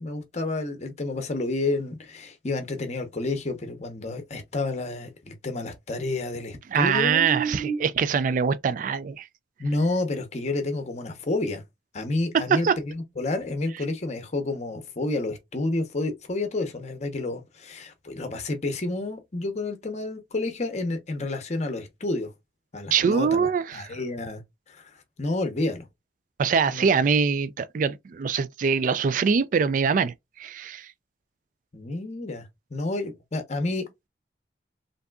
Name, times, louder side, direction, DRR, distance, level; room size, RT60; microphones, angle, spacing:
voice 1, 0.0-7.9 9.6-11.6 11.9-22.3 22.7-24.4 24.7-24.9 25.2-25.9 26.7-26.8 31.7-33.8, left 2 dB, 40° left, 0.7 m, -30 dB
voice 2, 6.7-9.3 12.5-12.8 22.9-23.9 26.4-30.1 30.4-30.9, right 6 dB, 45° right, 0.3 m, -23 dB
3.5 x 2.6 x 2.2 m
head